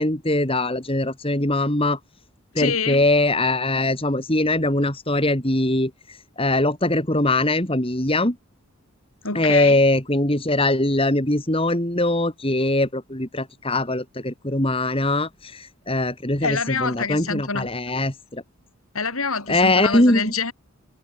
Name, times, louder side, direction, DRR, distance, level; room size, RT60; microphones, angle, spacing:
voice 1, 0.0-2.0 2.5-8.4 9.3-18.4 19.5-20.3, left 1 dB, 25° left, 2.9 m, -22 dB
voice 2, 2.6-3.0 9.2-9.8 16.4-17.7 18.9-20.5, left 4 dB, 70° left, 5.0 m, -26 dB
head